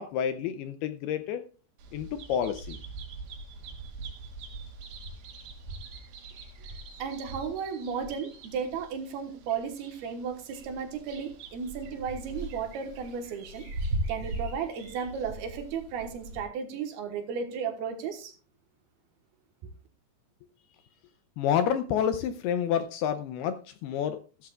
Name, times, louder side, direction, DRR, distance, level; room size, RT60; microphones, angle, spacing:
voice 1, 0.0-1.4 1.9-2.8 21.4-24.5, left 8 dB, 80° left, 9 dB, 2.4 m, -29 dB
Bird vocalization bird call bird song, 1.8-13.2, right 4 dB, 85° right, 4.5 m, -47 dB
sound 1, 3.6-4.2 4.5-4.6 4.8-8.9 9.4-10.3 10.5-16.4, right 1 dB, 50° right, 2.0 m, -39 dB
voice 2, 7.0-18.3, right 6 dB, 70° right, 5 dB, 2.9 m, -34 dB
15.0 x 13.5 x 2.4 m, 0.36 s
omnidirectional pair, 5.1 m